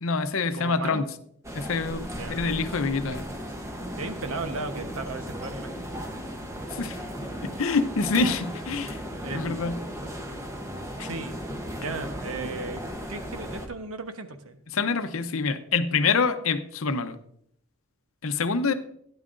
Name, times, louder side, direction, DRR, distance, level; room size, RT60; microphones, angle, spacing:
voice 1, 0.0-1.0 1.5-3.2 6.7-7.0 7.4-9.0 9.3-9.8 11.0-11.1 14.7-17.2 18.2-18.7, left 4 dB, 70° left, 10 dB, 0.7 m, -26 dB
voice 2, 0.5-1.0 2.1-2.4 4.0-5.9 9.2-9.7 11.0-11.4 11.8-12.8 13.1-14.6, right 3 dB, 75° right, 8 dB, 1.0 m, -35 dB
sound 1, 1.4-13.7, equal, 15° right, 0.9 m, -36 dB
12.5 x 10.0 x 2.6 m, 0.69 s
head